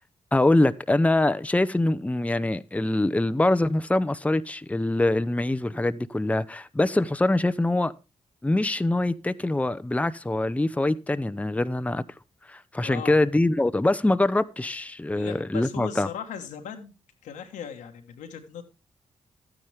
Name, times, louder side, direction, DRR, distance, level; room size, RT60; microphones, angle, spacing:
voice 1, 0.3-7.9 8.4-12.0 12.5-16.1, left 2 dB, 10° left, 0.7 m, -24 dB
voice 2, 12.8-13.1 15.1-16.9 17.2-18.6, left 7 dB, 90° left, 1.6 m, -38 dB
12.5 x 9.5 x 3.4 m
supercardioid pair, 45°, 13 cm